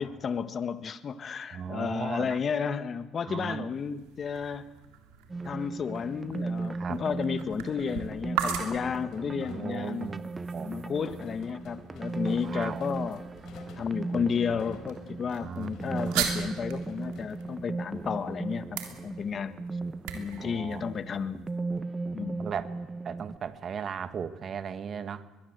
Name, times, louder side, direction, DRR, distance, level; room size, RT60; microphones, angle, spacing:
voice 1, 0.0-4.7 5.4-10.1 10.6-13.2 13.8-19.6 20.1-21.5 22.1-22.4, left 6 dB, 40° left, 12 dB, 1.4 m, -32 dB
voice 2, 1.5-2.4 3.2-3.7 6.7-7.0 9.2-10.2 10.5-10.7 12.4-12.8 15.4-16.2 20.4-21.0 22.3-22.7 23.0-25.3, right 7 dB, 45° right, 12 dB, 1.6 m, -37 dB
sound 1, 3.7-21.5, right 9 dB, 85° right, 3.4 m, -40 dB
sound 2, 5.3-23.4, right 3 dB, 20° right, 0.9 m, -37 dB
sound 3, 8.4-10.0 11.0-18.2, left 6 dB, 70° left, 4.1 m, -52 dB
22.5 x 21.5 x 8.0 m, 1.2 s
supercardioid pair, 85°, 0 cm